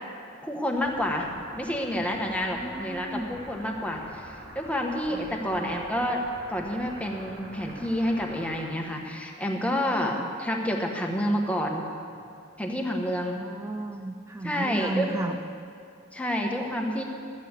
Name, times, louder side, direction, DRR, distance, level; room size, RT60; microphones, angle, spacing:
voice 1, 0.4-6.2 6.5-11.9 12.6-13.4 14.4-15.1 16.1-17.0, equal, 5° left, 1 dB, 1.2 m, -29 dB
sound 1, 0.8-8.7, right 1 dB, 90° right, 3.8 m, -46 dB
voice 2, 2.5-3.4 5.1-5.8 10.1-10.3 13.3-15.6, right 2 dB, 15° right, 5 dB, 0.4 m, -34 dB
13.5 x 7.6 x 8.2 m, 2.4 s
head